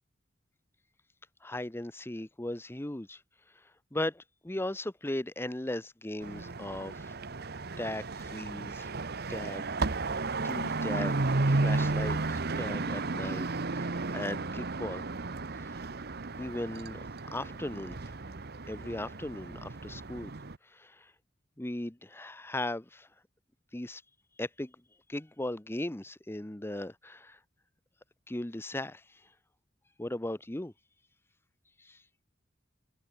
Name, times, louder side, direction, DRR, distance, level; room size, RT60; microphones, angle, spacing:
voice 1, 1.4-3.2 3.9-7.1 7.8-8.9 9.3-10.1 10.4-11.2 11.4-13.5 13.7-15.1 15.6-15.7 16.4-17.0 17.3-18.0 18.7-20.3 20.7-21.1 21.6-23.1 23.7-24.0 24.4-24.7 25.1-27.4 28.3-29.0 30.0-30.7 31.8-32.0, left 1 dB, 15° left, 0.9 m, -37 dB
sound 1, 6.2-20.6, right 3 dB, 60° right, 1.1 m, -33 dB
head